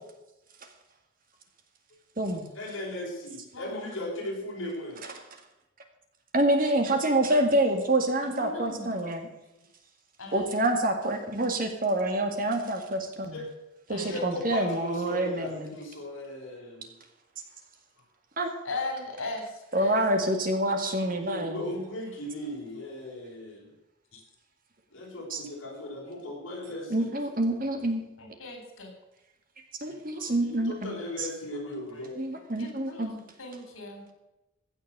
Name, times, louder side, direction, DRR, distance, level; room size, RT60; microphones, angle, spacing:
voice 1, 2.5-5.0 13.3-13.5 14.0-16.9 21.2-23.7 24.9-27.1 30.4-32.1, left 1 dB, 65° left, -4 dB, 6.5 m, -37 dB
voice 2, 3.5-3.9 8.2-9.1 10.2-10.5 13.9-14.3 18.6-20.3 20.8-20.9 24.1-24.2 28.2-28.9 29.9-30.3 31.9-34.0, left 2 dB, 90° left, 3 dB, 3.9 m, -39 dB
voice 3, 6.3-9.3 10.3-13.4 13.9-15.7 18.4-18.5 19.7-21.6 25.3-25.4 26.9-28.0 29.8-30.9 32.2-33.1, right 1 dB, 40° right, 5 dB, 2.0 m, -27 dB
15.5 x 6.5 x 8.0 m, 0.94 s
head